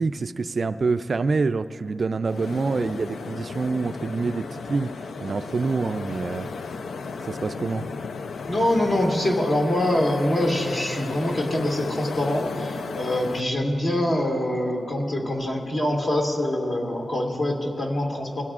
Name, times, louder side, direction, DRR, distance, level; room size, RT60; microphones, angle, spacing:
voice 1, 0.0-6.5 7.2-7.9, right 4 dB, 50° right, 11 dB, 0.3 m, -26 dB
sound 1, 2.3-13.4, left 4 dB, 75° left, 0.4 m, -34 dB
voice 2, 8.5-18.4, left 1 dB, 50° left, -1 dB, 2.1 m, -24 dB
22.5 x 17.0 x 2.4 m, 2.7 s
cardioid pair, 85°, 0 cm